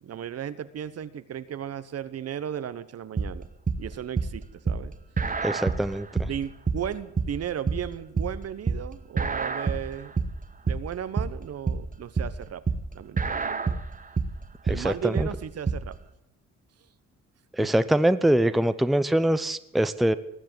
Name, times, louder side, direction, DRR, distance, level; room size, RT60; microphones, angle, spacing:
voice 1, 0.0-3.5 3.8-4.9 6.2-10.1 10.6-12.6 12.9-13.7 14.7-16.0 17.6-17.9, right 9 dB, 55° right, 14 dB, 1.0 m, -35 dB
sound 1, 3.2-15.9, right 4 dB, 25° right, 1.3 m, -28 dB
voice 2, 5.4-6.1 14.8-15.3 17.6-20.1, right 1 dB, ahead, 12 dB, 0.7 m, -23 dB
20.0 x 7.6 x 9.3 m, 0.85 s
cardioid pair, 90°, 30 cm